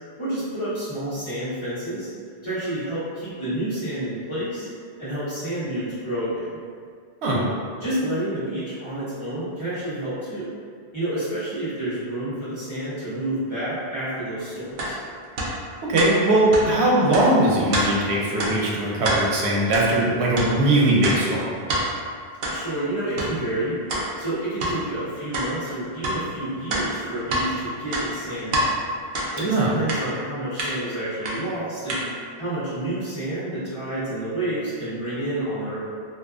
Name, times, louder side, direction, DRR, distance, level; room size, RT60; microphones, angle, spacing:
voice 1, 0.2-2.1 2.4-4.7 5.0-6.6 7.8-10.5 10.9-15.0 22.5-23.8 24.2-28.7 29.3-32.1 32.4-35.8, right 1 dB, 30° left, -15 dB, 1.2 m, -29 dB
sound 1, 14.8-14.9 15.4-15.5 16.0-16.1 16.5-16.7 17.1-17.3 17.7-17.9 18.4-18.5 19.0-19.2 19.7-19.9 20.3-20.5 21.0-21.2 21.7-21.8 22.4-22.6 23.2-23.3 23.9-24.1 24.6-24.8 25.3-25.5 26.0-26.2 26.7-27.5 27.9-28.7 29.1-29.3 29.9-30.0 30.6-30.7 31.2-31.4 31.9-32.0, right 1 dB, 60° right, 0.6 m, -26 dB
voice 2, 15.8-21.4 29.5-29.7, right 1 dB, 85° right, -5 dB, 0.8 m, -20 dB
2.6 x 2.2 x 2.4 m, 2.1 s
omnidirectional pair, 1.1 m